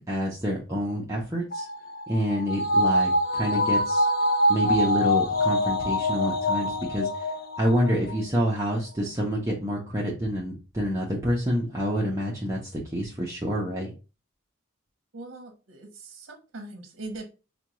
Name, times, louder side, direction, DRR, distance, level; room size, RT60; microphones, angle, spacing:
voice 1, 0.1-1.7 2.1-4.1 4.5-13.9, equal, 15° right, -4 dB, 0.6 m, -28 dB
sound 1, 1.5-8.2 8.5-8.6, left 1 dB, 45° left, 0.5 m, -25 dB
voice 2, 15.1-17.2, right 2 dB, 70° right, 2 dB, 0.7 m, -41 dB
5.0 x 2.2 x 2.9 m, 0.31 s
head